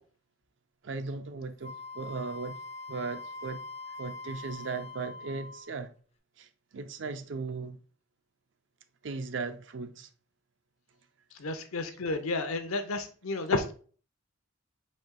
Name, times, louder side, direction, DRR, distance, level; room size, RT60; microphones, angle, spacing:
voice 1, 0.8-2.6 2.9-3.6 4.0-5.9 6.4-7.8 9.0-10.1, right 4 dB, 55° right, 0.4 m, -37 dB
Wind instrument woodwind instrument, 1.6-5.8, left 3 dB, 30° left, 0.4 m, -43 dB
voice 2, 11.3-13.7, left 3 dB, 80° left, 0.7 m, -31 dB
4.3 x 2.8 x 3.6 m
head